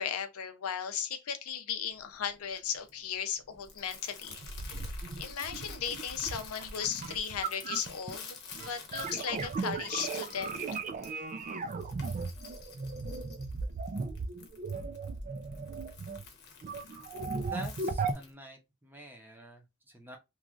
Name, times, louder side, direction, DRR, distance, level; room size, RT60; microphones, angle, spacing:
voice 1, 0.0-4.4 5.0-8.4 8.7-10.6, left 8 dB, 80° left, 0.5 m, -36 dB
Crumpling crinkling, 1.9-18.3, left 5 dB, 50° left, 0.9 m, -50 dB
sound 1, 4.3-8.2 8.5-16.3 16.6-18.1, right 4 dB, 35° right, 0.4 m, -37 dB
voice 2, 17.4-20.2, equal, 10° right, 0.7 m, -47 dB
3.1 x 2.4 x 2.4 m
head